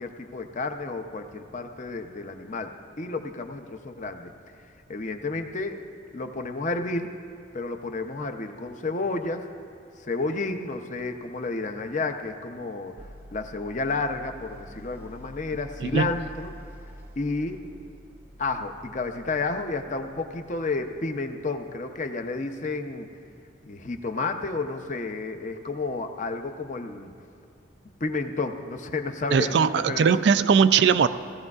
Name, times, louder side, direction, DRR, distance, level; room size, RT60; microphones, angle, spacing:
voice 1, 0.0-2.7 3.0-4.3 4.9-5.8 6.1-7.1 7.5-9.4 10.0-12.9 13.3-16.5 17.2-17.6 18.4-23.1 23.6-27.1 28.0-30.1, left 3 dB, 40° left, 6 dB, 0.6 m, -31 dB
sound 1, 13.0-21.1, equal, 10° right, 0.6 m, -47 dB
voice 2, 29.3-31.1, right 6 dB, 60° right, 13 dB, 0.3 m, -20 dB
17.0 x 14.0 x 2.4 m, 2.5 s
head